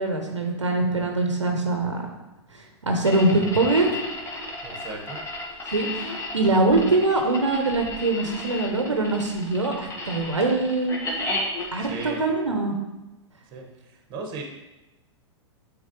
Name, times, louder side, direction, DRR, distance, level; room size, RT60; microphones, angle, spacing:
voice 1, 0.0-2.0 2.5-3.8 5.7-11.0 11.7-12.7, right 2 dB, 85° right, 3 dB, 0.8 m, -23 dB
sound 1, 3.1-12.1, left 2 dB, 20° left, 1.2 m, -33 dB
voice 2, 4.6-5.2 11.8-12.2 13.5-14.4, right 3 dB, 30° right, 2 dB, 1.2 m, -36 dB
8.6 x 3.9 x 3.0 m, 1.0 s
figure-of-eight pair, 100°, 15 cm